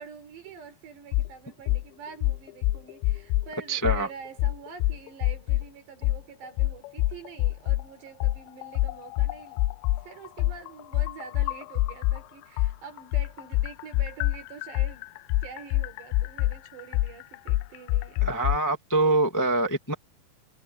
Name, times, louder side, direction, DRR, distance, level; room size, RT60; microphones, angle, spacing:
voice 1, 0.0-9.7 10.0-15.1 15.4-18.3, right 6 dB, 65° right, 6.4 m, -46 dB
sound 1, 1.1-1.3 1.7-1.8 2.2-3.5 3.8-4.0 4.4-5.7 6.0-6.2 6.6-7.8 8.2-12.2 12.6-18.6, left 17 dB, 80° left, 2.8 m, -25 dB
voice 2, 3.7-4.1 18.2-19.9, right 2 dB, 10° left, 0.8 m, -24 dB
omnidirectional pair, 5.3 m